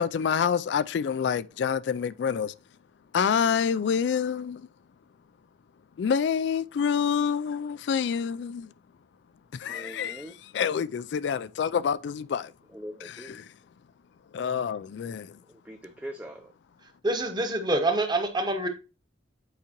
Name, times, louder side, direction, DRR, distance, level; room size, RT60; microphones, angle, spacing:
voice 1, 0.0-2.5 3.1-4.7 6.0-8.7 9.5-12.5 13.0-13.5 14.3-15.4, left 7 dB, 65° left, 0.3 m, -27 dB
voice 2, 9.7-10.3 12.7-13.4 15.5-16.5, equal, 10° right, 0.5 m, -42 dB
voice 3, 17.0-18.7, right 2 dB, 25° right, 1.1 m, -26 dB
8.5 x 4.9 x 2.9 m
head